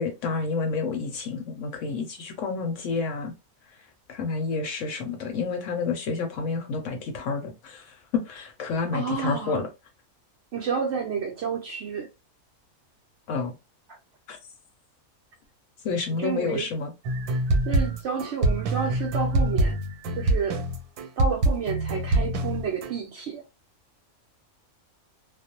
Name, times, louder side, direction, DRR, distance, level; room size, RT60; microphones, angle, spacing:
voice 1, 0.0-3.3 4.1-9.7 13.3-13.5 14.3-14.4 15.8-16.9, left 4 dB, 70° left, 0.8 m, -29 dB
voice 2, 8.9-9.7 10.5-12.1 16.2-16.7 17.7-19.8 20.2-20.6 21.2-23.4, right 5 dB, 65° right, 0.7 m, -30 dB
sound 1, 17.1-22.9, right 1 dB, 90° right, 1.1 m, -25 dB
2.4 x 2.0 x 2.7 m
omnidirectional pair, 1.6 m